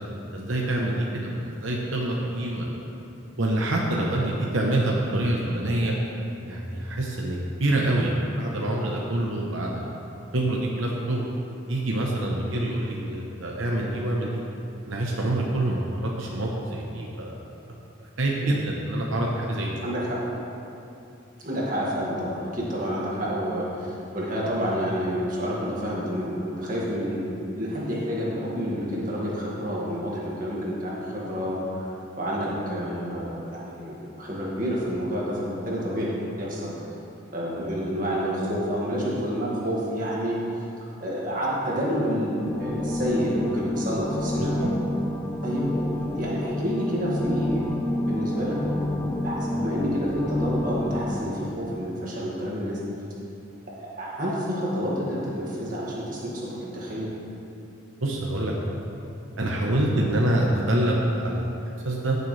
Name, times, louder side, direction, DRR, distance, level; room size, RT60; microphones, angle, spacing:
voice 1, 0.0-2.9 3.4-5.9 6.4-9.9 10.3-11.2 11.7-14.4 14.8-17.3 17.7-19.8 44.4-44.5 58.0-58.5 59.4-61.5 61.8-62.2, right 1 dB, 80° right, -2 dB, 1.0 m, -26 dB
voice 2, 19.8-20.2 21.4-27.2 27.6-31.9 32.2-36.1 36.4-36.7 37.3-40.4 41.0-44.7 45.4-47.7 48.1-52.8 53.7-56.3 56.6-57.1, equal, 40° right, -6 dB, 2.0 m, -29 dB
sound 1, 42.4-51.2, left 1 dB, 10° left, 0.6 m, -29 dB
15.0 x 6.8 x 3.3 m, 2.8 s
head